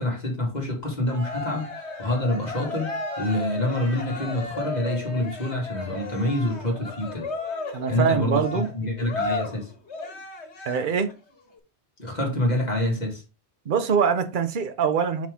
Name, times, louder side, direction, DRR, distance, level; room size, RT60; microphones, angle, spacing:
voice 1, 0.0-7.3 7.9-9.7 12.0-13.2, left 1 dB, 40° left, 2.0 m, -27 dB
Cheering, 1.1-11.1, left 3 dB, 70° left, 1.7 m, -34 dB
voice 2, 7.7-8.7 10.7-11.1 13.7-15.3, right 6 dB, 50° right, 0.9 m, -23 dB
5.8 x 5.0 x 3.5 m
omnidirectional pair, 1.2 m